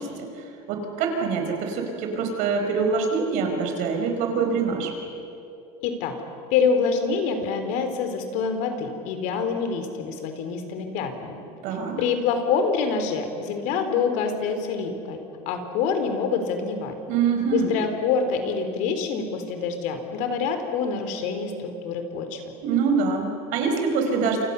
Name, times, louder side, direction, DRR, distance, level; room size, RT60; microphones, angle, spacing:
voice 1, 0.0-4.9 11.6-12.0 17.1-17.7 22.6-24.4, right 5 dB, 65° right, 4 dB, 5.3 m, -25 dB
voice 2, 5.8-6.2 6.5-11.4 12.0-15.2 15.5-16.9 17.5-22.4, left 5 dB, 65° left, 7 dB, 3.6 m, -26 dB
28.5 x 26.0 x 7.0 m, 2.7 s
cardioid pair, 150°, 14 cm